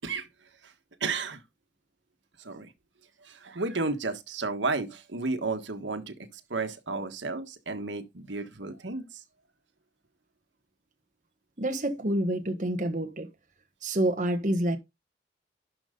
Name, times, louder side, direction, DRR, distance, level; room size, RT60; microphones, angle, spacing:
voice 1, 1.0-1.4 2.4-2.7 3.2-9.2, right 3 dB, 80° right, 1.5 m, -33 dB
voice 2, 11.6-13.3 13.8-14.8, right 1 dB, 40° right, 1.3 m, -27 dB
12.0 x 5.4 x 3.9 m
head